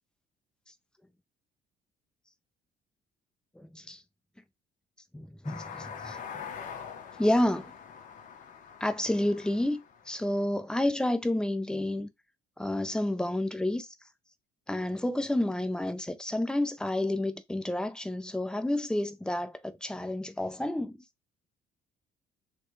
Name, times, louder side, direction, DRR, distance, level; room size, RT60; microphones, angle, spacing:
voice 1, 3.6-4.0 5.1-6.2 7.2-7.7 8.8-12.1 12.6-13.9 14.7-21.0, left 1 dB, 5° left, 0.5 m, -30 dB
sound 1, 5.4-10.4, left 7 dB, 50° left, 0.9 m, -44 dB
3.3 x 3.1 x 3.1 m
cardioid pair, 110°, 17 cm